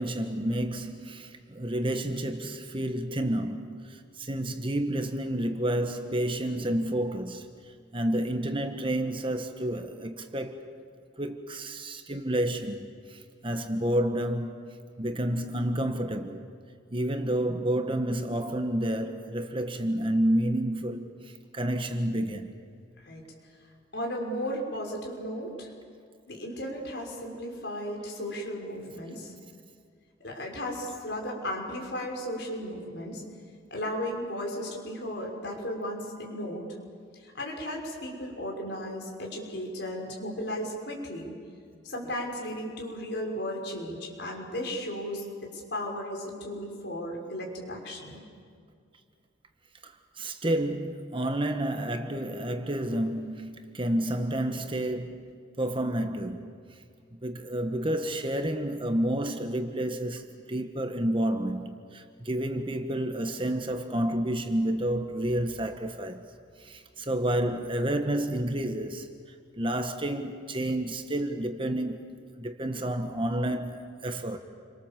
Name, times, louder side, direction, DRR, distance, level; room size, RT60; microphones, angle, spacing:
voice 1, 0.0-7.5 7.9-10.6 11.2-14.6 15.0-16.4 16.9-21.1 21.5-22.5 49.8-49.9 50.2-55.3 55.6-56.6 57.2-66.2 66.6-69.1 69.6-74.4, right 1 dB, 25° right, 1.3 m, -30 dB
voice 2, 23.9-25.7 26.3-29.3 30.2-33.2 33.7-36.7 37.1-41.3 41.8-48.2, equal, 60° left, 5.7 m, -35 dB
29.5 x 24.5 x 7.5 m
head